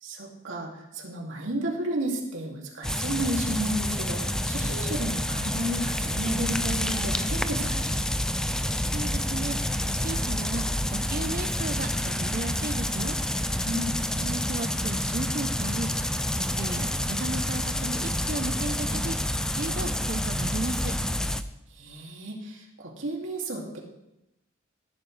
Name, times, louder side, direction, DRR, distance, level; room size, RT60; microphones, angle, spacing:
voice 1, 0.0-8.0 13.6-14.0 21.7-23.8, right 1 dB, 85° right, -2 dB, 2.6 m, -32 dB
sound 1, 2.8-21.4, left 1 dB, 5° left, 0.4 m, -28 dB
voice 2, 8.9-9.6 9.9-10.6 11.1-13.2 14.2-15.9 16.6-19.2 19.5-21.0, right 2 dB, 45° right, 11 dB, 0.7 m, -34 dB
15.0 x 12.0 x 3.3 m, 0.87 s
head